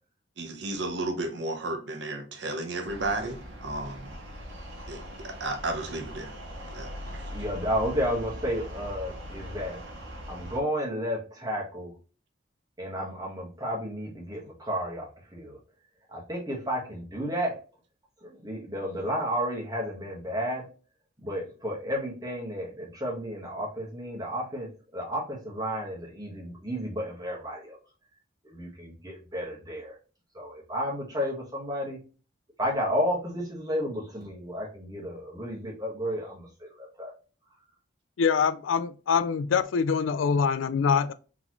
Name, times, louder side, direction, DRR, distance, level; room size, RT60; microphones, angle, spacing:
voice 1, 0.4-4.1 4.9-6.3 6.7-7.2, right 2 dB, 70° right, 0.8 m, -33 dB
sound 1, 2.8-10.6, equal, 90° right, 1.2 m, -41 dB
voice 2, 7.3-9.8 10.3-11.9 12.8-15.1 15.3-15.6 16.1-17.6 18.2-20.6 21.2-27.8 28.4-29.9 30.3-32.0 32.6-37.1, equal, 20° right, 1.4 m, -32 dB
voice 3, 38.2-41.1, left 6 dB, 90° left, 0.4 m, -24 dB
4.0 x 3.5 x 3.0 m
head